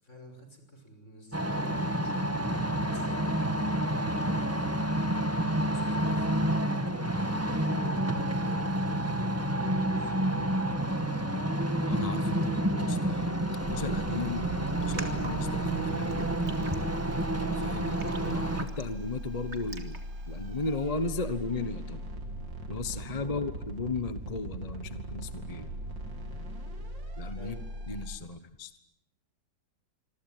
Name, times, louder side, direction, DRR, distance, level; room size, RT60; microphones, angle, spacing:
voice 1, 0.0-2.3 2.8-5.2 5.7-10.1 23.2-23.5 27.3-27.7, equal, 40° left, 6 dB, 6.1 m, -50 dB
sound 1, 1.3-18.6, right 1 dB, 10° right, 1.9 m, -29 dB
voice 2, 11.9-13.3 13.7-14.5 14.8-16.3 17.4-20.0 20.3-22.0 22.7-25.7 27.2-27.6 27.9-28.7, left 3 dB, 25° left, 12 dB, 1.1 m, -35 dB
sound 2, 13.6-28.2, right 1 dB, 85° right, 4.1 m, -39 dB
Raindrop, 14.7-20.9, right 3 dB, 40° right, 2.8 m, -48 dB
26.5 x 23.5 x 9.3 m, 0.81 s
omnidirectional pair, 1.9 m